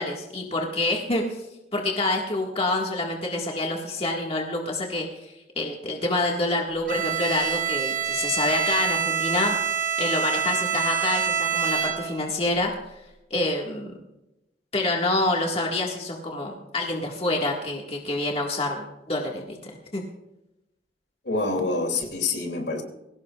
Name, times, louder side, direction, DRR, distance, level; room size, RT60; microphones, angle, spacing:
voice 1, 0.0-1.4 1.7-9.6 10.0-12.7 13.3-13.9 14.7-20.0, left 2 dB, 35° left, 1.9 m, -27 dB
Bowed string instrument, 6.9-12.3, right 8 dB, 45° right, 1.4 m, -26 dB
voice 2, 21.3-22.8, left 3 dB, 65° left, 2.8 m, -26 dB
22.0 x 17.5 x 2.4 m
head